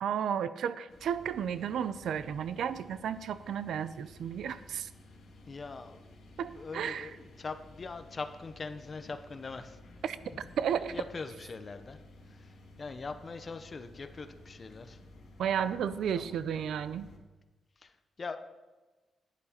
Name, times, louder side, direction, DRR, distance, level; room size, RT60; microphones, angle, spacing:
voice 1, 0.0-4.9 6.4-7.1 10.0-10.2 10.6-10.9 15.4-17.1, right 8 dB, 75° right, 14 dB, 0.4 m, -33 dB
sound 1, 0.9-17.2, left 2 dB, 55° left, 1.8 m, -54 dB
voice 2, 5.5-6.1 6.4-9.8 10.8-12.0 12.3-15.0 15.9-16.4 17.8-18.4, left 4 dB, 30° left, 9 dB, 0.6 m, -42 dB
11.0 x 9.1 x 4.3 m, 1.2 s
wide cardioid pair, 175°, 0 cm